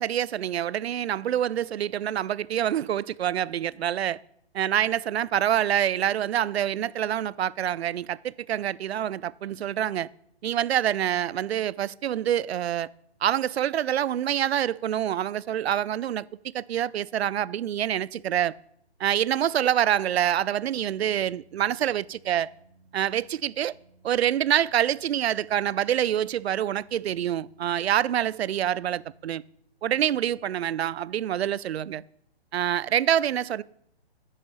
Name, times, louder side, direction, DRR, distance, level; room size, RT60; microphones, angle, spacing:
voice 1, 0.0-4.2 4.5-10.1 10.4-12.9 13.2-18.5 19.0-22.5 22.9-23.7 24.0-29.4 29.8-32.0 32.5-33.6, right 10 dB, 75° right, 0.5 m, -26 dB
Organ, 19.0-29.8, right 3 dB, 75° left, 2.9 m, -60 dB
9.9 x 6.8 x 7.0 m
hypercardioid pair, 170°, 32 cm